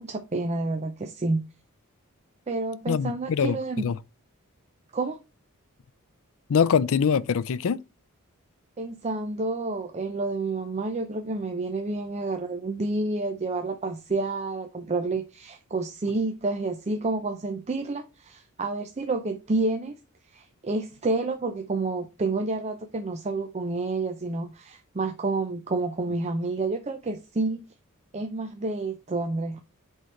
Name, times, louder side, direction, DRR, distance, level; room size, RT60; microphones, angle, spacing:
voice 1, 0.0-1.4 2.5-3.8 4.9-5.2 8.8-19.9 20.3-27.6 28.1-29.6, right 3 dB, 30° right, 0.6 m, -29 dB
voice 2, 2.9-4.0 6.5-7.8, left 6 dB, 65° left, 0.4 m, -24 dB
8.1 x 3.8 x 4.3 m
head